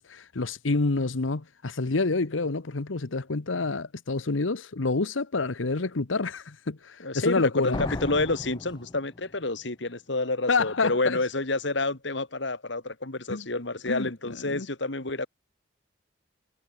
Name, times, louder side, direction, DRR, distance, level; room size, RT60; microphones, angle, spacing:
voice 1, 0.0-7.8 10.5-11.2 13.3-13.4 13.9-14.1 14.5-14.7, left 3 dB, 90° left, 1.1 m, -28 dB
voice 2, 7.0-15.3, left 2 dB, 65° left, 2.4 m, -29 dB
sound 1, 7.7-9.5, left 2 dB, 25° left, 0.6 m, -36 dB
head